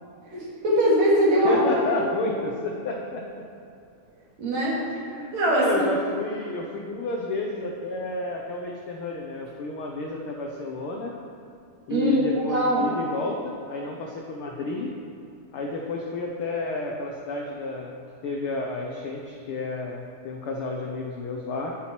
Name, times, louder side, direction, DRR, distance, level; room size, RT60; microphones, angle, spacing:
voice 1, 0.3-1.7 4.4-4.8 5.3-5.9 11.9-12.9, equal, 60° right, -6 dB, 3.5 m, -21 dB
voice 2, 1.4-3.4 5.0-11.1 11.9-14.9 15.5-21.8, left 2 dB, 80° left, 0 dB, 1.2 m, -31 dB
11.0 x 9.2 x 4.5 m, 2.5 s
omnidirectional pair, 3.6 m